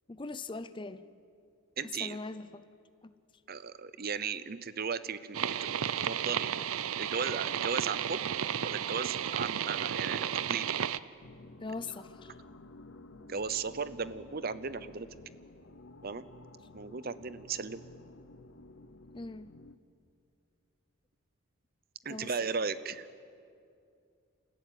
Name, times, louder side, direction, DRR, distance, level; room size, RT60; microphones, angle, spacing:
voice 1, 0.1-1.0 1.8-2.7 3.0-3.1 11.6-12.4 19.1-19.5 22.1-22.3, left 3 dB, 20° left, 0.5 m, -41 dB
voice 2, 1.8-2.2 3.5-5.7 6.0-6.5 7.0-8.2 8.6-10.2 10.5-10.8 13.3-15.1 16.0-16.2 16.7-17.8 22.0-23.1, right 5 dB, 45° right, 0.7 m, -36 dB
sound 1, 5.3-11.0, right 9 dB, 80° right, 0.6 m, -33 dB
sound 2, 11.2-19.8, left 2 dB, 60° left, 0.8 m, -53 dB
28.5 x 15.0 x 9.2 m
head